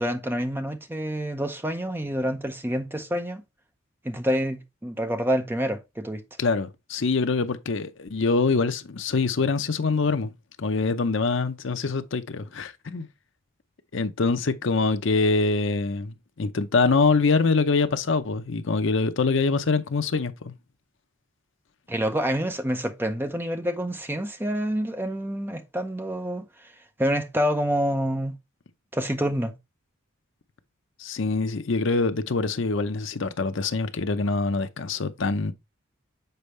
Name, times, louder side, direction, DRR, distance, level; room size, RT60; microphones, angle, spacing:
voice 1, 0.0-3.4 4.0-6.2 21.9-26.7 27.0-28.3 28.9-29.5, equal, 10° right, 0.6 m, -27 dB
voice 2, 6.4-10.3 10.6-13.1 13.9-20.5 31.0-35.5, left 4 dB, 60° left, 0.6 m, -24 dB
6.8 x 4.5 x 3.2 m
head